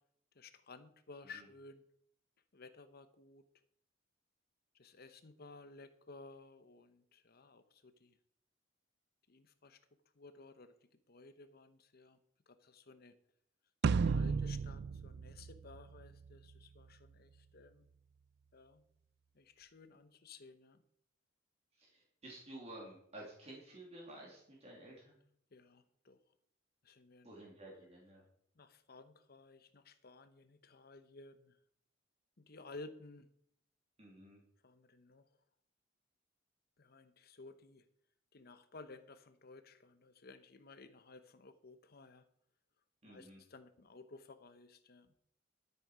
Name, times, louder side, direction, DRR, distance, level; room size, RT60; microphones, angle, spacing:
voice 1, 0.3-1.8 2.5-3.4 4.7-8.1 9.3-9.8 10.2-12.2 12.5-13.1 13.8-17.9 18.5-18.8 19.3-20.8 25.5-26.2 26.8-27.3 28.6-31.6 32.4-33.3 34.6-35.3 36.8-37.8 38.3-42.2 43.0-45.1, left 3 dB, 50° left, 11 dB, 0.9 m, -56 dB
sound 1, 13.8-16.3, right 5 dB, 55° right, 0.3 m, -34 dB
voice 2, 14.0-14.4 21.8-25.2 27.2-28.2 34.0-34.4 43.0-43.4, right 1 dB, 35° right, -3 dB, 3.1 m, -53 dB
13.0 x 8.3 x 5.0 m, 0.67 s
head